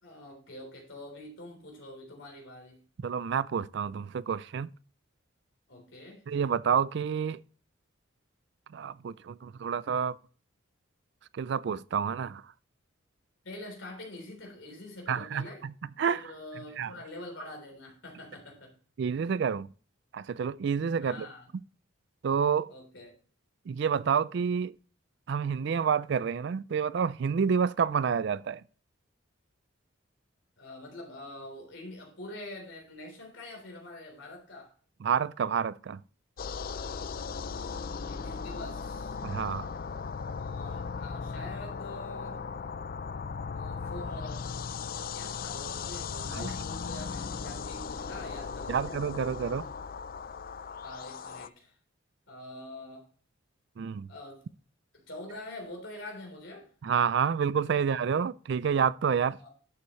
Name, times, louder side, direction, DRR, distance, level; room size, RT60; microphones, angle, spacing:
voice 1, 0.0-2.8 5.7-6.2 13.4-15.6 16.1-18.7 21.0-21.5 22.7-23.1 30.6-34.7 38.1-39.2 40.4-42.4 43.5-44.5 44.9-48.9 50.8-51.8 52.3-53.1 54.1-54.4 54.9-56.7 57.8-57.9 59.4-59.5, left 1 dB, 65° left, 3.7 m, -45 dB
voice 2, 3.0-4.7 6.3-7.4 8.7-10.2 11.3-12.4 15.1-15.7 16.0-16.2 16.8-16.9 19.0-19.7 20.1-21.3 22.2-22.7 23.7-24.7 25.3-28.6 35.0-36.0 39.2-39.7 46.3-46.5 48.7-49.7 53.8-54.1 56.8-59.4, right 7 dB, 55° right, 0.3 m, -29 dB
sound 1, 36.4-51.5, left 5 dB, 45° left, 0.4 m, -37 dB
11.5 x 7.0 x 3.1 m
head